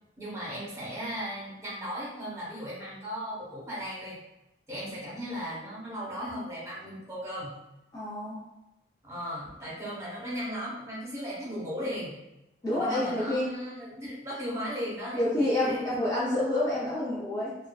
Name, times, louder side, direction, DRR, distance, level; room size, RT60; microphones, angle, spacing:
voice 1, 0.2-4.2 4.7-7.5 9.0-12.2 12.7-15.9, equal, 15° right, -7 dB, 0.8 m, -36 dB
voice 2, 7.9-8.4 12.6-13.5 15.1-17.6, left 1 dB, 20° left, -8 dB, 0.5 m, -28 dB
2.5 x 2.3 x 2.2 m, 0.93 s
head